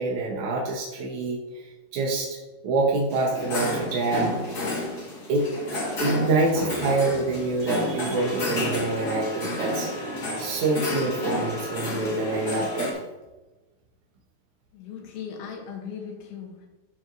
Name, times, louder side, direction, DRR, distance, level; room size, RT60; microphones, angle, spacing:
voice 1, 0.0-1.6 1.9-2.4 2.6-4.7 5.3-5.5 6.0-9.9 10.4-12.9, right 3 dB, 70° right, -3 dB, 1.8 m, -26 dB
sound 1, 3.1-12.9, left 1 dB, 55° left, 1.1 m, -30 dB
voice 2, 14.7-16.7, left 7 dB, 90° left, 2 dB, 3.0 m, -38 dB
12.0 x 4.2 x 2.6 m, 1.1 s
omnidirectional pair, 4.4 m